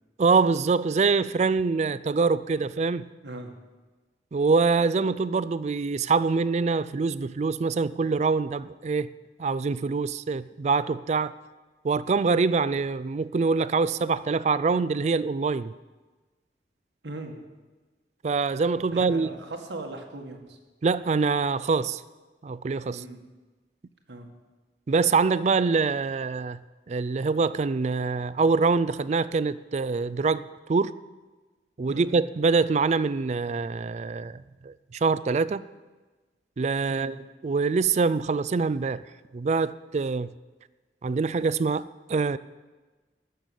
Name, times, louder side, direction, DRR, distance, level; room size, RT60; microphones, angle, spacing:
voice 1, 0.2-3.1 4.3-9.1 9.4-11.3 11.8-15.7 18.2-19.3 20.8-22.0 22.4-23.0 24.9-26.6 26.9-30.9 31.8-35.6 36.6-37.2 37.4-39.0 39.3-40.3 41.0-42.4, right 4 dB, 40° right, 0.3 m, -25 dB
voice 2, 3.2-3.5 17.0-17.4 18.9-20.6 22.9-23.2 24.1-24.3 31.9-32.2 36.9-37.1, right 2 dB, 90° right, 1.8 m, -39 dB
13.5 x 6.8 x 9.2 m
head